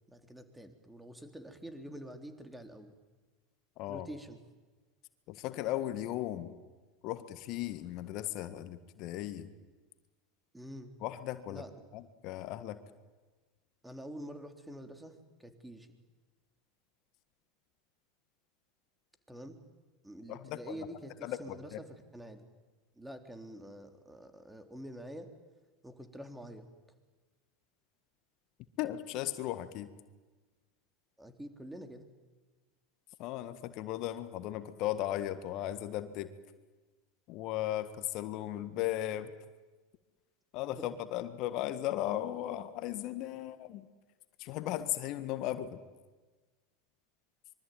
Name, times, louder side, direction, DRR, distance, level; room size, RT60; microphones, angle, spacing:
voice 1, 0.1-3.0 3.9-4.4 10.5-10.9 11.5-11.7 13.8-15.9 19.3-19.6 20.0-22.5 23.0-25.3 25.8-26.7 31.2-32.1 40.7-41.0, equal, 5° right, 7 dB, 3.4 m, -47 dB
voice 2, 3.8-4.1 5.3-6.5 7.0-9.5 11.0-11.6 11.9-12.8 20.3-20.7 21.2-21.8 28.8-29.9 33.2-36.3 37.3-39.3 40.5-43.9 44.4-45.8, left 13 dB, 50° left, 11 dB, 1.7 m, -36 dB
25.5 x 23.5 x 9.3 m, 1.3 s
hypercardioid pair, 85°, 0 cm